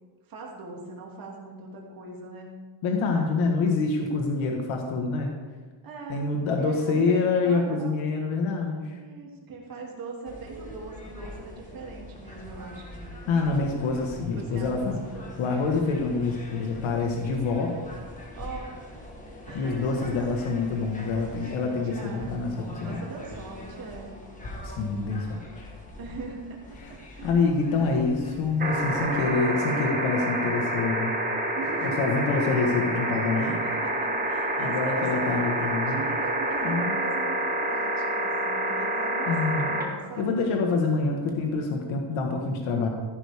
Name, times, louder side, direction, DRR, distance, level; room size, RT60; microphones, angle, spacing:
voice 1, 0.3-2.5 5.8-6.2 6.6-7.2 7.4-8.0 9.0-13.1 14.3-15.3 18.4-18.7 19.5-19.9 21.4-22.5 22.8-24.1 26.0-27.5 29.1-29.9 31.5-32.3 33.3-40.5, right 3 dB, 45° right, -2 dB, 2.8 m, -40 dB
voice 2, 2.8-5.3 6.1-9.0 13.3-15.0 15.4-17.8 19.5-23.0 24.6-25.7 26.8-26.9 27.2-31.2 31.8-33.6 34.6-36.0 36.6-37.0 39.3-39.7 40.2-42.9, left 4 dB, 85° left, 2 dB, 1.6 m, -26 dB
sound 1, 10.3-29.3, left 1 dB, 15° left, 1.6 m, -43 dB
sound 2, 28.6-39.8 41.3-41.4, right 1 dB, 20° right, 1.5 m, -28 dB
14.5 x 11.0 x 3.6 m, 1.4 s
cardioid pair, 175°, 47 cm